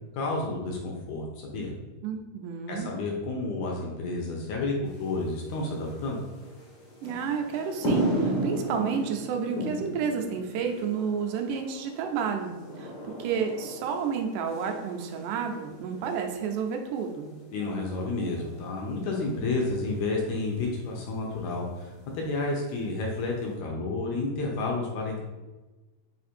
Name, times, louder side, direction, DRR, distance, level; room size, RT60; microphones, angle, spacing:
voice 1, 0.1-1.7 2.7-6.2 17.5-25.2, left 3 dB, 75° left, 0 dB, 1.8 m, -31 dB
voice 2, 2.0-2.9 7.0-12.9 13.2-17.3, right 6 dB, 90° right, 4 dB, 2.2 m, -30 dB
sound 1, 4.9-23.5, right 1 dB, 55° left, 1.6 m, -37 dB
5.0 x 2.5 x 4.2 m, 1.2 s
omnidirectional pair, 3.6 m